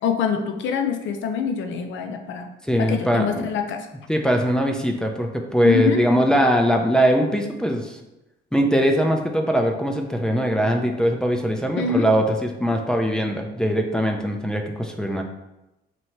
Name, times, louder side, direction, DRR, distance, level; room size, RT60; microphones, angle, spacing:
voice 1, 0.0-2.5 2.8-3.9 5.6-6.0 11.8-12.1, left 7 dB, 75° left, 6 dB, 0.5 m, -24 dB
voice 2, 2.7-3.5 4.1-8.0 8.5-15.2, equal, 5° left, 3 dB, 0.4 m, -21 dB
3.0 x 2.7 x 4.4 m, 0.97 s
cardioid pair, 110°, 20 cm